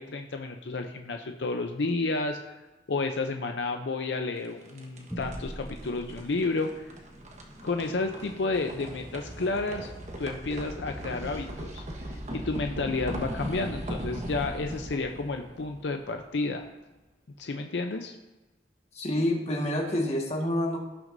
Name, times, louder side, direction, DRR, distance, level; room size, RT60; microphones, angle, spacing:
voice 1, 0.0-2.6 2.9-6.9 7.6-9.9 10.2-11.8 12.1-16.7 17.4-18.1, left 3 dB, 75° left, 5 dB, 0.6 m, -31 dB
sound 1, 4.4-16.5, right 1 dB, 40° right, 1.3 m, -39 dB
sound 2, 5.1-9.9, equal, 5° left, 1.9 m, -45 dB
voice 2, 18.9-20.8, left 1 dB, 35° left, 0 dB, 1.6 m, -27 dB
17.0 x 6.1 x 2.6 m, 1.1 s
head